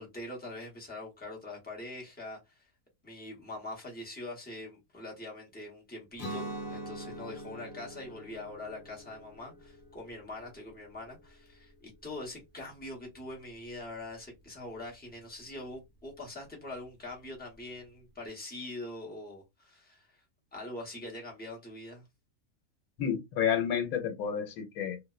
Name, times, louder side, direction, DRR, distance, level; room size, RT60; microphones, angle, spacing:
voice 1, 0.0-2.7 3.0-20.2 20.5-22.1, left 2 dB, 10° left, 0.6 m, -43 dB
Guitar, 6.2-12.0, right 1 dB, 50° left, 1.0 m, -44 dB
voice 2, 23.0-25.0, left 8 dB, 90° left, 1.1 m, -30 dB
2.5 x 2.1 x 2.3 m
omnidirectional pair, 1.5 m